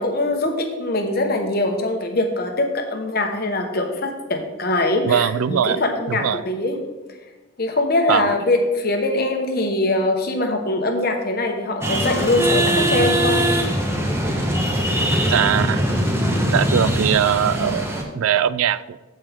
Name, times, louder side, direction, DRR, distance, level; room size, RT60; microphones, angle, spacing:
voice 1, 0.0-6.7 7.6-13.5, left 2 dB, 45° left, 4 dB, 1.1 m, -22 dB
voice 2, 5.0-5.8 6.1-6.4 8.1-8.3 15.3-15.9 16.5-19.0, right 9 dB, 85° right, 17 dB, 0.3 m, -21 dB
sound 1, 11.8-18.0, right 1 dB, 10° right, 1.0 m, -21 dB
14.5 x 5.4 x 3.5 m, 1.2 s
head